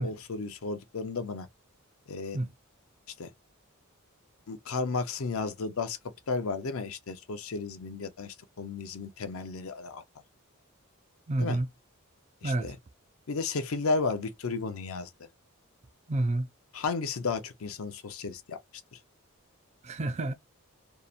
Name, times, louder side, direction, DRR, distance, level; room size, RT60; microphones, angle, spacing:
voice 1, 0.0-1.5 2.1-2.4 3.2-3.3 4.5-6.0 6.3-10.0 11.4-11.6 12.4-12.8 13.3-15.1 16.7-18.6 18.9-19.0, left 4 dB, 75° left, 0.6 m, -33 dB
voice 2, 11.3-11.7 12.4-12.7 16.1-16.5 19.8-20.3, right 2 dB, 30° right, 0.4 m, -29 dB
2.7 x 2.0 x 2.4 m
head